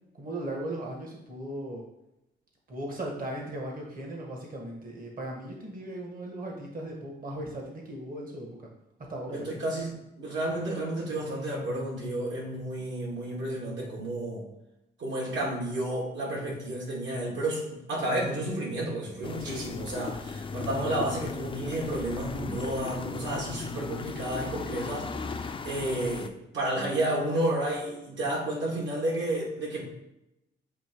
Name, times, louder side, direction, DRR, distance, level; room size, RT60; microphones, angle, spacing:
voice 1, 0.1-1.8 2.7-8.5 9.1-9.6 19.4-19.6, right 1 dB, 45° right, 0 dB, 1.5 m, -37 dB
voice 2, 9.3-14.5 15.0-30.0, right 1 dB, 70° right, -3 dB, 2.4 m, -31 dB
sound 1, 19.2-26.3, left 4 dB, 25° left, 0.5 m, -37 dB
7.8 x 2.8 x 4.6 m, 0.90 s
cardioid pair, 90°, 20 cm